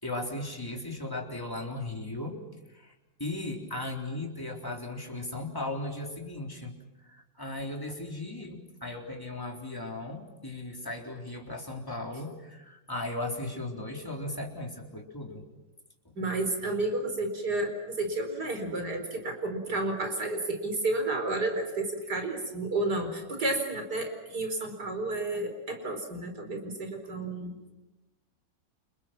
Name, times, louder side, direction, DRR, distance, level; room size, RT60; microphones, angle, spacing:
voice 1, 0.0-2.4 2.7-2.9 3.2-6.7 7.0-15.4 16.1-16.2, left 2 dB, 10° left, 0 dB, 3.8 m, -37 dB
voice 2, 16.2-27.7, right 2 dB, 60° right, 5 dB, 5.0 m, -31 dB
30.0 x 27.0 x 6.1 m, 1.1 s
omnidirectional pair, 2.0 m